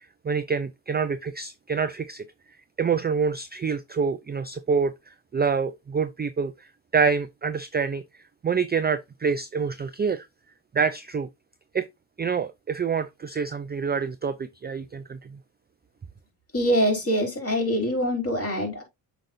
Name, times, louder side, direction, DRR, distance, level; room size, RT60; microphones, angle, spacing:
voice 1, 0.2-2.2 2.8-6.7 6.9-8.0 8.4-10.3 10.7-11.3 11.7-11.9 12.2-15.3, right 5 dB, 20° right, 0.4 m, -26 dB
voice 2, 16.5-18.8, equal, 30° left, 3.8 m, -24 dB
7.5 x 5.2 x 2.6 m
cardioid pair, 75°, 49 cm